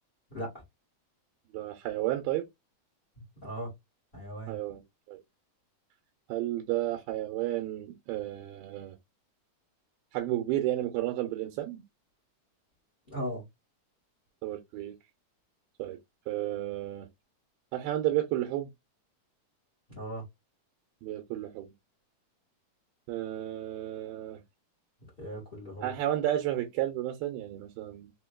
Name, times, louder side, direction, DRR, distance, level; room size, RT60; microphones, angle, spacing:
voice 1, 0.3-0.6 3.4-3.7 4.1-4.5 13.1-13.4 19.9-20.2 25.2-25.9, equal, 85° left, 0.5 m, -37 dB
voice 2, 1.5-2.5 4.5-4.8 5.1-5.2 6.3-9.0 10.1-11.8 14.4-14.9 15.8-16.0 16.3-17.1 17.7-18.7 21.0-21.7 23.1-24.4 25.8-28.1, right 13 dB, 85° right, 2.6 m, -32 dB
5.9 x 2.3 x 2.2 m
omnidirectional pair, 4.2 m